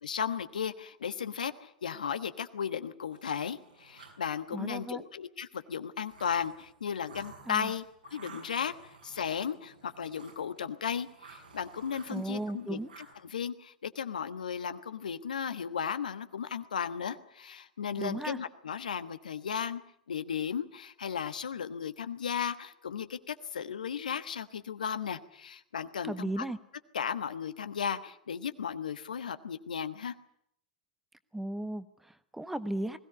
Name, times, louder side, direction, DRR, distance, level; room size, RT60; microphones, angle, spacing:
voice 1, 0.0-7.8 8.1-12.8 13.2-19.8 20.1-26.4 26.9-30.1, left 7 dB, 75° left, 11 dB, 1.3 m, -35 dB
sound 1, 3.1-4.5 6.0-10.6 10.9-13.1, right 5 dB, 80° right, 6.1 m, -53 dB
voice 2, 4.5-5.0 7.5-7.7 12.1-12.9 18.0-18.4 26.0-26.6 31.3-33.0, right 1 dB, 5° right, 13 dB, 1.3 m, -35 dB
21.0 x 17.0 x 9.7 m, 0.71 s
figure-of-eight pair, 95°, 4 cm